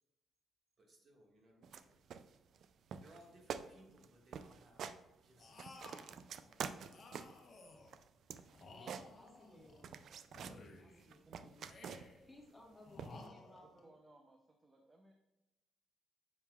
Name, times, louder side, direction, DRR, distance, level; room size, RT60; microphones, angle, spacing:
voice 1, 0.8-2.4 3.0-4.9 5.2-6.6, right 1 dB, 45° right, 0 dB, 1.7 m, -65 dB
sound 1, 1.6-1.8 2.1-2.6 2.9-3.2 3.5-3.7 4.0-4.1 4.3-5.0 5.4-7.4 7.9-9.5 9.8-10.6 11.0-12.2 13.0-13.3, right 7 dB, 65° right, 0.3 m, -47 dB
sound 2, 5.4-6.2 6.9-8.0 8.5-9.9 10.3-11.1 11.6-12.3 12.8-13.8, left 3 dB, 50° left, 1.1 m, -56 dB
voice 2, 8.6-10.1 10.8-11.6 12.2-13.9, left 1 dB, 15° left, -1 dB, 1.6 m, -60 dB
voice 3, 11.2-11.6 13.6-15.1, right 2 dB, 30° right, 3 dB, 0.6 m, -64 dB
7.5 x 5.5 x 2.3 m, 0.95 s
cardioid pair, 90°, 0 cm